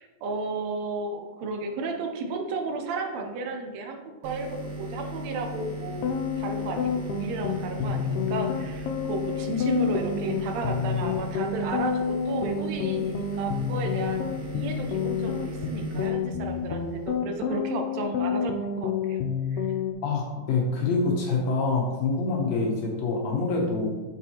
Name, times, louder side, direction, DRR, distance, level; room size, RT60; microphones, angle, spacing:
voice 1, 0.0-6.1 6.4-14.2 14.5-19.2 19.5-19.7, right 3 dB, 75° right, 4 dB, 1.8 m, -33 dB
sound 1, 4.2-17.2, equal, 55° right, 1.9 m, -38 dB
sound 2, 5.9-19.9, left 7 dB, 90° left, 2.1 m, -29 dB
voice 2, 20.0-23.9, left 3 dB, 70° left, -1 dB, 1.9 m, -26 dB
7.3 x 6.3 x 2.9 m, 1.3 s
omnidirectional pair, 3.5 m